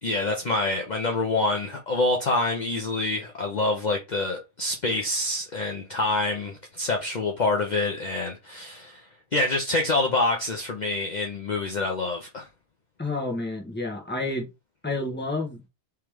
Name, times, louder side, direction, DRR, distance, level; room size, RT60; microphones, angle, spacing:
voice 1, 0.0-9.0 9.3-12.5, left 2 dB, 45° left, 0.8 m, -26 dB
voice 2, 13.0-14.5 14.8-15.6, left 2 dB, 10° left, 1.3 m, -29 dB
3.5 x 3.2 x 4.7 m
omnidirectional pair, 1.2 m